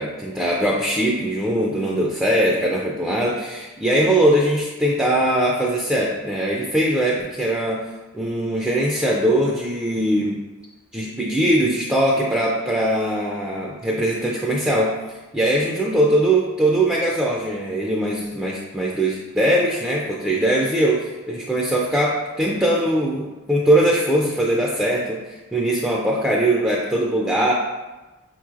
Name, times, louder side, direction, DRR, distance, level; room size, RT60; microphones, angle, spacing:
voice 1, 0.0-7.8 8.1-10.4 10.9-27.5, right 1 dB, 5° right, -3 dB, 0.3 m, -21 dB
5.3 x 3.0 x 2.4 m, 1.2 s
head